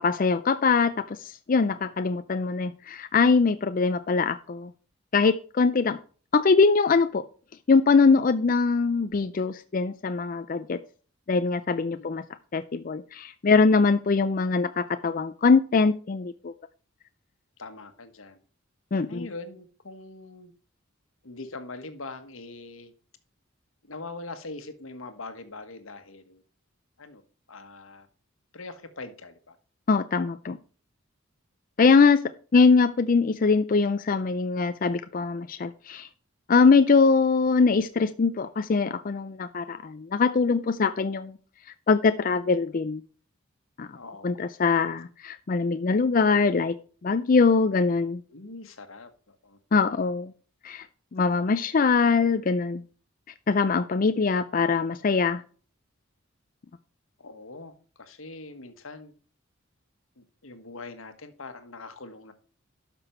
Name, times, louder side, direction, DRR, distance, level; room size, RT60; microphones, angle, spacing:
voice 1, 0.0-4.7 5.1-6.0 6.3-7.2 7.7-10.8 11.3-12.2 12.5-16.5 18.9-19.3 29.9-30.6 31.8-32.2 32.5-36.1 36.5-41.4 41.9-43.0 43.8-44.0 44.2-46.8 47.0-48.2 49.7-50.3 50.6-50.9 51.1-52.8 53.5-55.4, left 4 dB, 40° left, 0.4 m, -22 dB
voice 2, 17.6-18.4 19.1-20.5 21.2-22.9 23.8-26.4 27.0-27.2 27.5-28.1 28.5-29.5 43.9-44.4 48.3-49.6 57.2-59.1 60.2-62.3, left 3 dB, 75° left, 1.4 m, -42 dB
11.5 x 6.1 x 4.4 m
head